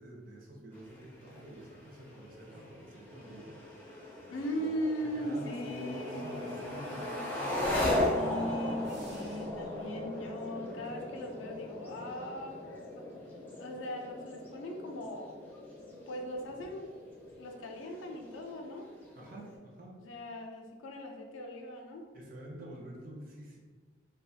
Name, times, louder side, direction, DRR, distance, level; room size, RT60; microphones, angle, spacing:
voice 1, 0.0-3.6 4.2-7.8 19.2-20.0 22.1-23.6, equal, 45° right, -2 dB, 0.5 m, -48 dB
sound 1, 0.7-19.5, left 1 dB, 10° left, 0.4 m, -38 dB
voice 2, 4.3-7.2 8.1-12.6 13.0-13.1 13.6-15.3 16.1-16.9 17.4-18.9 20.0-22.0, equal, 80° left, 2 dB, 0.4 m, -39 dB
sound 2, 8.8-9.8, right 1 dB, 70° right, 0.8 m, -55 dB
2.4 x 2.3 x 2.6 m, 1.5 s
head